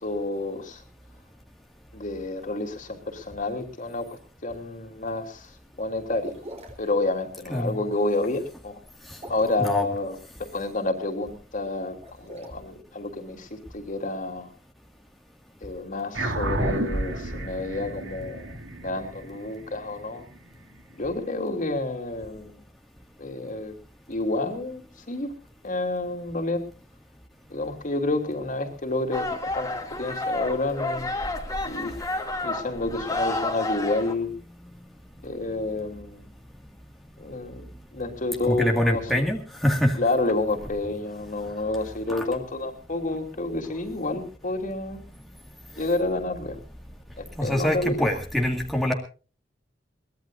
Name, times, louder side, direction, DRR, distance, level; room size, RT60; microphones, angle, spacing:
voice 1, 0.0-0.8 1.9-5.5 5.8-6.4 6.8-8.8 9.3-14.5 15.6-20.3 20.9-22.6 23.2-23.7 24.1-25.3 25.6-26.7 27.5-31.3 31.6-31.9 32.4-34.3 35.2-36.3 37.2-39.2 40.0-45.0 45.7-46.6 47.2-48.0, left 2 dB, 45° left, 4 dB, 3.1 m, -29 dB
sound 1, 6.2-6.9 9.1-9.7 11.9-12.5, right 1 dB, 35° right, 4.1 m, -42 dB
voice 2, 7.5-7.8 9.1-9.2 9.6-9.9 38.4-40.0 42.1-42.2 47.4-48.9, equal, ahead, 0 dB, 2.0 m, -24 dB
sound 2, 16.1-20.9, right 1 dB, 85° right, 2.4 m, -31 dB
sound 3, 29.1-34.1, left 2 dB, 20° left, 2.4 m, -30 dB
23.0 x 19.0 x 2.6 m, 0.37 s
head